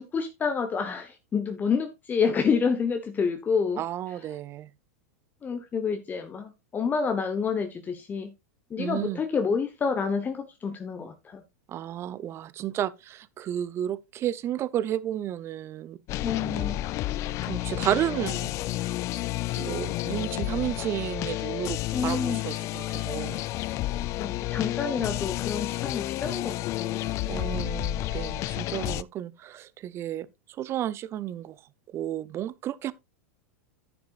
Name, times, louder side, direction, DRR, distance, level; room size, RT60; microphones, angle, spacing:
voice 1, 0.0-3.8 5.4-8.3 8.7-11.4 16.2-16.8 21.9-22.4 24.2-27.6, left 5 dB, 25° left, 1.1 m, -28 dB
voice 2, 3.8-4.7 8.8-9.2 11.7-16.0 16.3-16.8 17.4-18.9 19.1-19.2 19.6-23.5 27.3-30.3 30.6-31.6 31.9-32.9, right 11 dB, 35° right, 0.7 m, -32 dB
sound 1, 16.1-29.0, left 16 dB, 40° left, 0.4 m, -31 dB
10.5 x 9.6 x 2.5 m
hypercardioid pair, 95°, 8 cm